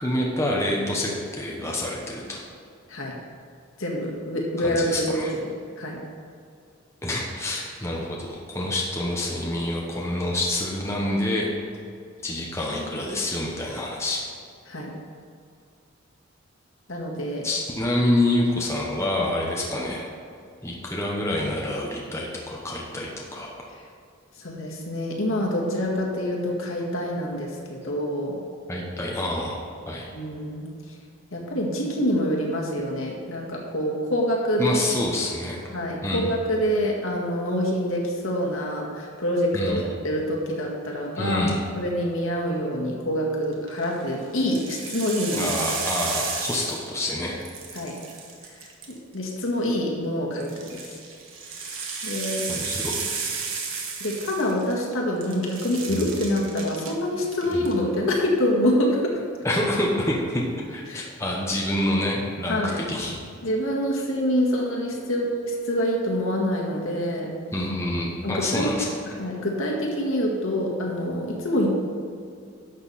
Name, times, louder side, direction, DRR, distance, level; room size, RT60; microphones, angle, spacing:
voice 1, 0.0-2.4 4.6-5.3 7.0-11.5 12.2-14.2 17.4-20.1 20.6-23.5 28.7-30.1 34.6-35.6 36.0-36.3 39.5-39.8 41.2-41.6 45.4-47.4 52.5-53.0 55.9-56.0 57.5-57.7 59.4-63.2 67.5-68.8, left 1 dB, 15° left, -3 dB, 1.1 m, -27 dB
voice 2, 3.8-6.0 14.7-14.9 16.9-17.5 19.7-19.8 24.4-28.4 30.1-30.7 31.3-34.8 35.7-41.5 41.8-45.5 47.7-48.0 48.9-50.9 52.0-52.4 54.0-59.2 60.9-61.0 62.5-62.8 63.4-67.3 68.2-68.7 69.1-71.7, equal, 75° left, -2 dB, 1.9 m, -26 dB
sound 1, 43.5-43.9 44.4-47.1 47.4-49.2 50.4-54.9 55.2-56.9 57.3-57.7, right 5 dB, 75° right, 1.4 m, -33 dB
11.5 x 6.9 x 4.3 m, 2.4 s
head